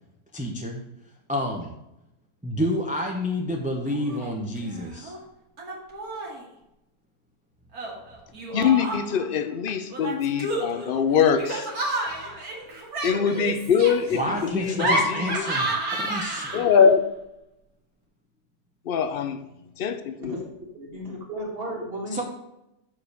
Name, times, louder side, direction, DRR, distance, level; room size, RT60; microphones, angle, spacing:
voice 1, 0.3-0.8 1.3-1.7 2.4-5.1 14.1-16.6 22.1-22.2, equal, 10° right, 0 dB, 0.5 m, -29 dB
Laughter, 3.9-4.3 4.6-5.2 5.6-6.4 7.7-9.2 9.9-16.9, right 2 dB, 65° right, 2.2 m, -30 dB
voice 2, 8.5-11.7 13.0-15.5 16.5-17.0 18.9-19.4 19.8-20.4, left 7 dB, 70° left, 10 dB, 0.5 m, -23 dB
voice 3, 20.7-22.2, right 1 dB, 35° right, -2 dB, 2.2 m, -34 dB
6.9 x 4.8 x 6.6 m, 0.88 s
omnidirectional pair, 1.7 m